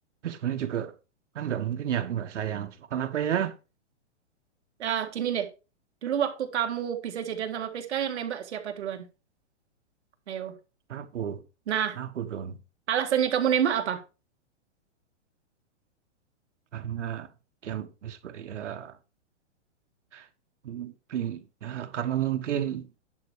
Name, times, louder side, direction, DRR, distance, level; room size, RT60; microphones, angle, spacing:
voice 1, 0.2-0.9 1.3-3.5 10.9-11.4 12.0-12.6 16.7-17.3 17.6-18.9 20.1-20.3 20.6-22.9, right 10 dB, 85° right, 1.4 m, -31 dB
voice 2, 4.8-5.5 6.0-9.1 10.3-10.6 11.7-12.0 12.9-14.0, right 9 dB, 70° right, 1.9 m, -28 dB
10.5 x 5.7 x 4.8 m
hypercardioid pair, 160°, 35 cm